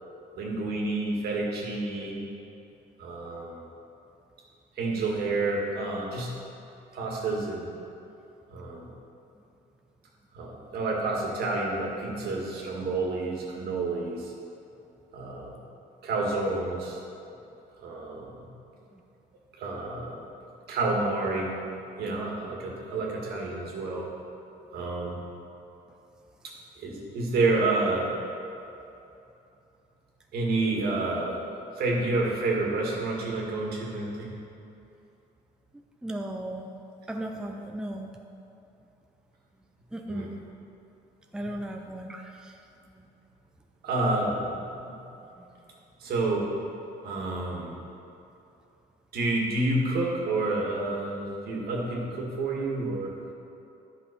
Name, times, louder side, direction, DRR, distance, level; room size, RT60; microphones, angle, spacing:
voice 1, 0.4-2.2 3.0-3.6 4.8-6.3 6.9-7.7 8.5-8.9 10.3-14.3 15.1-15.6 16.0-17.0 17.8-18.5 19.6-20.2 20.7-21.6 22.0-24.1 24.7-25.2 26.8-28.1 30.3-31.4 31.8-34.3 40.1-40.3 41.4-41.5 43.8-45.1 46.0-46.5 47.0-47.8 49.1-53.1, right 2 dB, 70° right, -2 dB, 1.9 m, -29 dB
voice 2, 36.0-36.7 37.1-38.1 39.9-40.3 41.3-42.5 43.0-43.1, right 1 dB, 5° right, 3 dB, 0.5 m, -36 dB
10.0 x 5.8 x 5.2 m, 2.8 s
cardioid pair, 110°, 17 cm